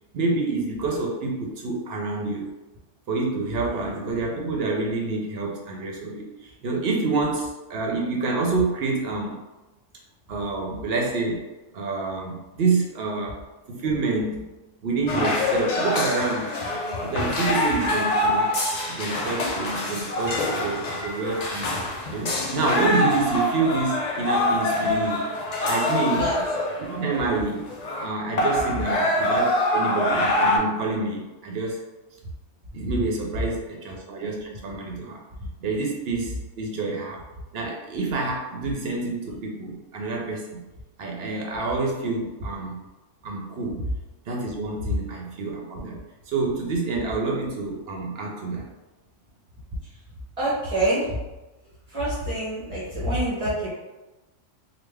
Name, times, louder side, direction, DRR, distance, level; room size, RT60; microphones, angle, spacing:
voice 1, 0.1-2.5 3.1-9.4 10.3-11.4 11.7-13.4 13.7-14.5 14.8-16.6 17.0-18.5 18.9-21.7 22.1-25.2 25.7-26.3 26.9-27.7 28.0-31.8 32.7-35.2 35.6-37.2 37.5-40.6 41.0-42.8 43.2-43.8 44.3-46.0 46.3-48.7, right 3 dB, 65° right, 0 dB, 0.7 m, -27 dB
sound 1, 15.1-28.0 28.4-30.6, left 1 dB, 60° left, 0.4 m, -25 dB
voice 2, 50.4-51.2 51.9-53.7, right 1 dB, 35° right, -8 dB, 0.7 m, -26 dB
3.3 x 2.3 x 3.3 m, 1.1 s
omnidirectional pair, 1.3 m